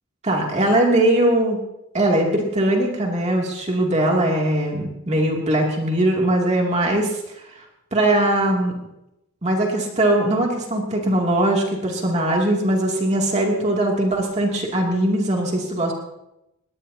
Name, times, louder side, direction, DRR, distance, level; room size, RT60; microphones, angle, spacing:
voice 1, 0.2-1.6 1.9-7.5 7.9-8.8 9.4-15.9, right 1 dB, 30° right, -1 dB, 2.7 m, -20 dB
22.0 x 18.0 x 2.9 m, 0.87 s
head